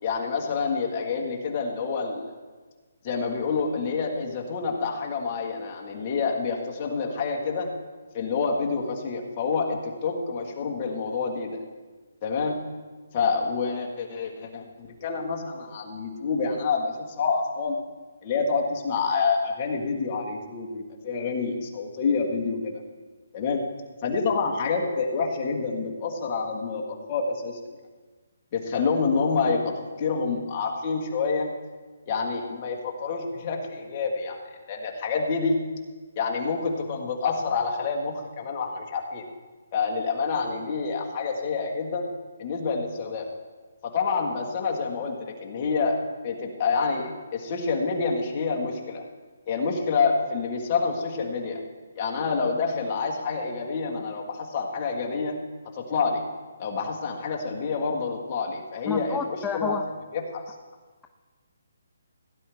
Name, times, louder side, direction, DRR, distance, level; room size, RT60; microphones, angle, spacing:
voice 1, 0.0-2.3 3.0-7.7 8.1-11.6 12.2-12.6 13.1-17.8 18.2-22.8 23.3-23.6 24.0-27.6 28.5-31.5 32.1-34.4 34.7-35.6 36.2-39.2 39.7-42.1 42.4-43.3 43.8-49.0 49.5-51.6 52.0-55.4 55.7-56.2 56.6-59.8 60.1-60.5, left 4 dB, 30° left, -1 dB, 1.7 m, -27 dB
voice 2, 58.9-59.8, left 6 dB, 5° left, 3 dB, 0.4 m, -30 dB
17.0 x 10.5 x 3.5 m, 1.4 s
hypercardioid pair, 160°, 0 cm